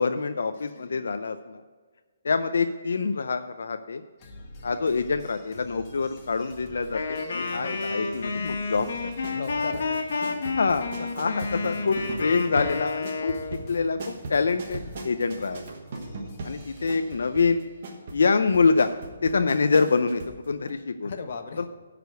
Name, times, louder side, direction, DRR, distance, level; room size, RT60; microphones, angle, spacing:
voice 1, 0.0-1.6 2.2-4.0 4.6-8.9 10.6-13.3 13.7-15.6 16.4-17.6 18.1-18.9 19.2-20.2 20.5-21.1 21.6-21.7, left 4 dB, 75° left, 9 dB, 0.4 m, -25 dB
voice 2, 0.6-1.1 8.0-8.2 9.3-10.1 21.0-21.7, left 5 dB, 45° left, 7 dB, 0.9 m, -38 dB
sound 1, 4.2-16.9, left 1 dB, 20° left, 1.1 m, -48 dB
Wind instrument woodwind instrument, 6.9-13.6, left 4 dB, 60° left, 1.5 m, -30 dB
sound 2, 8.7-20.4 20.7-20.8, right 2 dB, 40° right, 1.2 m, -39 dB
9.2 x 5.1 x 7.8 m, 1.4 s
hypercardioid pair, 175°, 0 cm